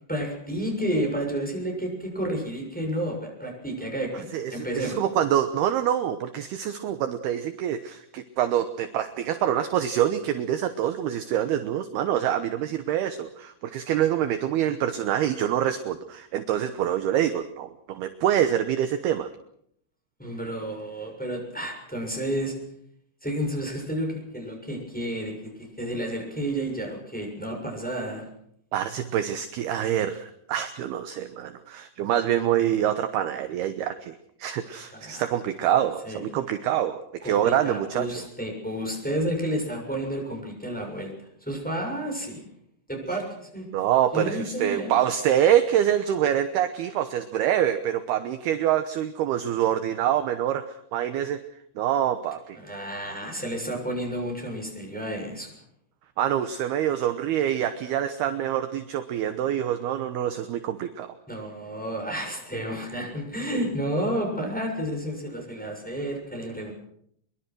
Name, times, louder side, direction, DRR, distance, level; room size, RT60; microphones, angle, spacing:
voice 1, 0.1-5.0 20.2-22.5 23.2-28.2 34.9-35.2 36.0-36.2 37.2-42.4 42.9-43.7 44.1-44.9 52.5-55.5 61.3-66.7, right 1 dB, ahead, 1 dB, 6.5 m, -31 dB
voice 2, 4.3-19.3 28.7-38.3 43.7-51.4 51.8-52.6 56.2-61.2, right 10 dB, 70° right, 9 dB, 2.6 m, -26 dB
24.0 x 23.0 x 6.3 m, 0.70 s
omnidirectional pair, 5.5 m